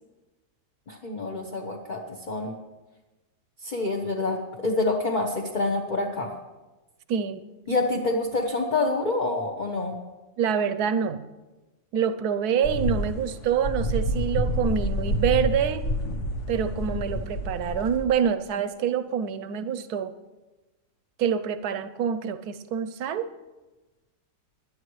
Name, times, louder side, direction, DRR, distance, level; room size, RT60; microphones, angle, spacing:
voice 1, 0.9-2.0 2.3-2.6 3.6-6.3 7.7-10.0, left 2 dB, 30° left, 0 dB, 1.0 m, -27 dB
voice 2, 7.1-7.5 10.4-11.2 11.9-15.8 16.5-20.1 21.2-23.3, right 8 dB, 70° right, 12 dB, 1.2 m, -26 dB
sound 1, 12.6-18.0, equal, 50° left, 1.3 m, -28 dB
20.5 x 11.5 x 3.2 m, 1.1 s
omnidirectional pair, 1.8 m